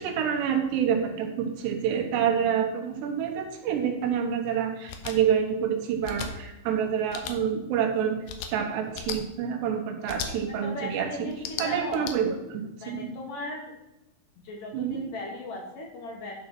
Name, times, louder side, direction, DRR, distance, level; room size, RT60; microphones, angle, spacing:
voice 1, 0.0-8.2 8.5-11.3 11.6-13.1 14.7-15.0, right 8 dB, 80° right, 3 dB, 3.3 m, -27 dB
sound 1, 4.9-5.2 6.0-6.3 7.1-7.4 8.3-8.5 8.9-9.2 10.1-10.3 11.3-12.1, left 8 dB, 85° left, 2.9 m, -35 dB
voice 2, 10.5-12.1 12.8-13.7 14.4-16.3, left 2 dB, 65° left, 0 dB, 2.3 m, -37 dB
11.0 x 3.9 x 6.0 m, 0.93 s
omnidirectional pair, 5.0 m